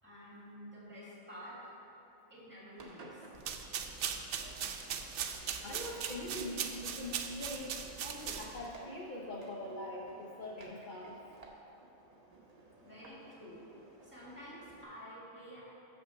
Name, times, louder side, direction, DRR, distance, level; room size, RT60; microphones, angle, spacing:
voice 1, 0.0-1.6 2.3-3.3 12.8-13.6 14.0-15.6, equal, 10° right, -7 dB, 2.2 m, -50 dB
Engine, 2.7-14.8, right 2 dB, 35° right, 0.8 m, -57 dB
sound 1, 3.3-8.7, right 7 dB, 70° right, 0.9 m, -39 dB
voice 2, 5.6-11.2, left 1 dB, 45° left, -2 dB, 0.8 m, -43 dB
6.2 x 6.0 x 7.1 m, 2.9 s
omnidirectional pair, 1.3 m